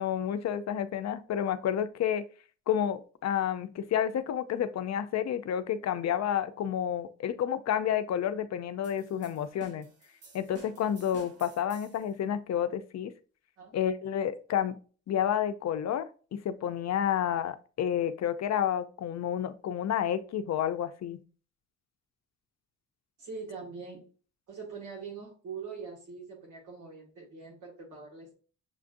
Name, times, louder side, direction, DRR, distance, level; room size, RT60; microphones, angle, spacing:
voice 1, 0.0-2.2 2.7-9.9 10.3-13.1 13.7-14.8 15.1-21.2, left 9 dB, 60° left, 11 dB, 0.5 m, -30 dB
sound 1, 8.8-12.1, right 4 dB, 50° right, 1.1 m, -54 dB
voice 2, 23.2-24.1 24.5-28.3, right 5 dB, 90° right, -1 dB, 1.9 m, -43 dB
6.7 x 2.5 x 2.5 m, 0.38 s
cardioid pair, 75°, 30 cm